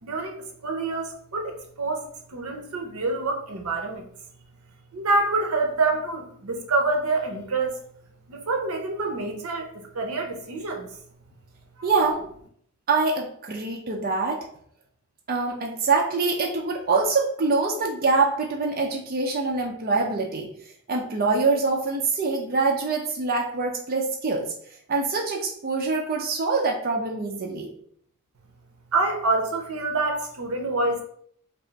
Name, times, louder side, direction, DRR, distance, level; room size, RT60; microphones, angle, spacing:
voice 1, 0.0-4.1 4.9-7.8 8.3-10.9 11.8-11.9 28.9-31.0, right 3 dB, 80° right, 4 dB, 0.7 m, -27 dB
voice 2, 11.8-12.2 12.9-14.5 15.3-20.5 20.9-24.5 24.9-27.7, right 3 dB, 40° right, -1 dB, 0.5 m, -24 dB
3.4 x 2.4 x 3.9 m, 0.63 s
head